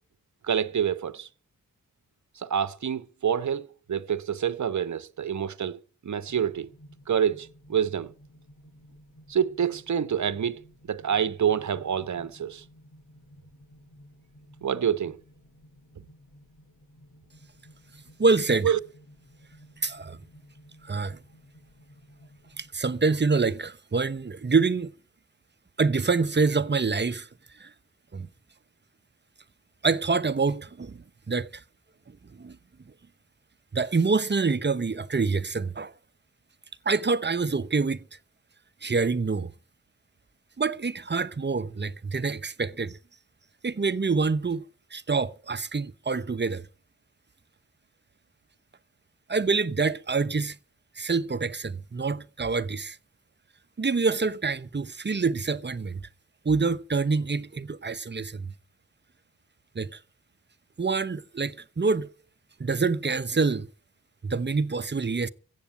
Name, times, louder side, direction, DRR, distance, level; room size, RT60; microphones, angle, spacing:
voice 1, 0.4-1.3 2.4-6.7 7.1-8.1 9.3-10.6 10.9-12.6 14.6-15.2 18.6-18.8, right 8 dB, 55° right, 1.0 m, -27 dB
sound 1, 6.3-22.7, equal, 80° left, 6.4 m, -54 dB
voice 2, 18.2-18.7 19.8-20.2 20.8-21.2 22.6-24.9 25.8-27.3 27.6-27.7 28.1-28.3 29.8-31.6 32.4-32.6 33.7-35.9 36.8-38.0 38.8-39.5 40.6-43.0 43.6-44.6 44.9-46.7 49.3-50.6 51.0-53.0 53.8-56.1 56.4-58.5 59.7-60.0 60.8-62.1 62.6-63.7 64.2-65.3, right 4 dB, 30° right, 1.0 m, -26 dB
15.0 x 8.6 x 8.8 m
cardioid pair, 45°, 34 cm